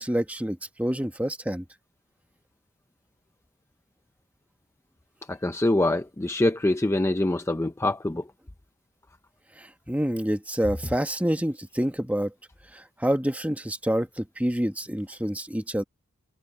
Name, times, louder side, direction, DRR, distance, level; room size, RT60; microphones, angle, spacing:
voice 1, 0.0-1.6 9.9-12.3 12.7-15.8, equal, 5° right, 1.2 m, -27 dB
voice 2, 5.3-8.3, left 1 dB, 10° left, 0.5 m, -24 dB
head